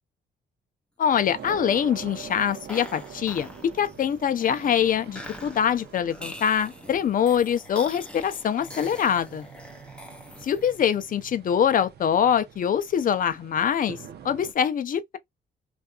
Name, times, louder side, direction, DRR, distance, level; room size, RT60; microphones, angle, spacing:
voice 1, 1.0-3.5 3.8-9.5 10.4-14.0 14.2-15.2, left 8 dB, 45° left, 0.5 m, -24 dB
sound 1, 1.0-10.9, left 1 dB, 5° left, 0.6 m, -44 dB
sound 2, 1.1-14.5, right 8 dB, 55° right, 0.6 m, -45 dB
2.6 x 2.4 x 2.2 m
cardioid pair, 90°, 20 cm